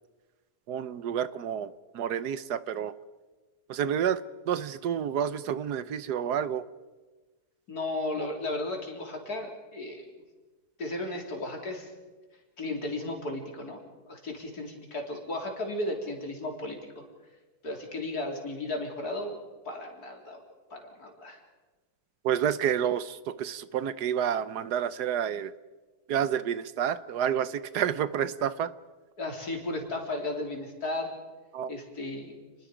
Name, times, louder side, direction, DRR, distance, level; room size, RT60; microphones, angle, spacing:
voice 1, 0.7-2.9 3.7-4.2 4.5-6.6 22.2-25.5 26.1-28.7 31.5-31.7, right 9 dB, 85° right, 15 dB, 1.4 m, -29 dB
voice 2, 7.7-10.1 10.8-11.9 12.6-17.0 17.6-19.4 19.7-20.4 20.7-21.4 29.2-31.1 31.7-32.4, left 2 dB, 70° left, 1 dB, 4.1 m, -35 dB
29.5 x 21.5 x 5.1 m, 1.3 s
omnidirectional pair, 1.7 m